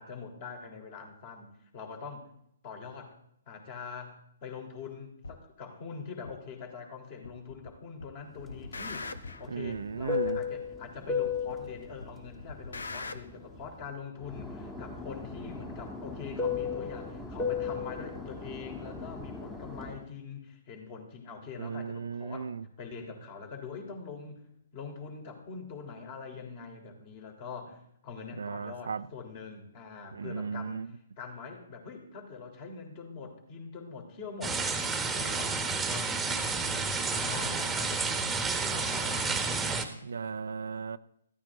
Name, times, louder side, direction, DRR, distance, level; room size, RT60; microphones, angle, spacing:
voice 1, 0.0-2.3 2.6-3.2 3.5-4.2 4.4-9.1 9.4-22.5 22.8-24.5 24.7-34.8 35.1-38.4 38.7-39.9, left 5 dB, 35° left, 3.7 m, -44 dB
sound 1, 5.2-5.4 6.2-6.3 7.2-7.7 8.0-9.5 10.2-10.3 11.2-11.7 12.0-13.2, left 3 dB, 75° left, 1.0 m, -41 dB
Fixed-wing aircraft airplane, 8.5-13.8 14.2-20.0, left 6 dB, 10° left, 1.5 m, -36 dB
voice 2, 9.5-10.4 21.6-22.6 28.4-29.1 30.1-30.9 40.0-41.0, right 5 dB, 70° right, 0.5 m, -36 dB
sound 2, 34.4-39.8, right 4 dB, 5° right, 1.4 m, -30 dB
14.0 x 13.5 x 3.8 m
figure-of-eight pair, 130°, 0 cm